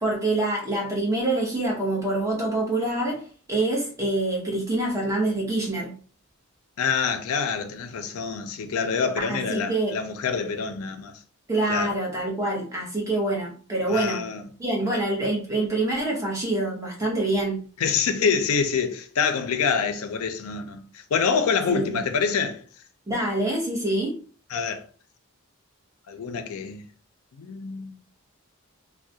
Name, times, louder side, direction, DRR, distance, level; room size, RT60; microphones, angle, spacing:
voice 1, 0.0-3.2 3.5-6.0 9.2-10.0 11.5-14.2 14.6-17.6 21.7-22.0 23.1-24.2, right 2 dB, 15° right, 0.7 m, -26 dB
voice 2, 6.8-11.2 11.7-11.9 13.9-14.5 14.9-15.0 17.8-22.6 24.5-24.9 26.1-26.8 27.4-28.0, left 6 dB, 75° left, 0.4 m, -26 dB
2.2 x 2.1 x 2.7 m
head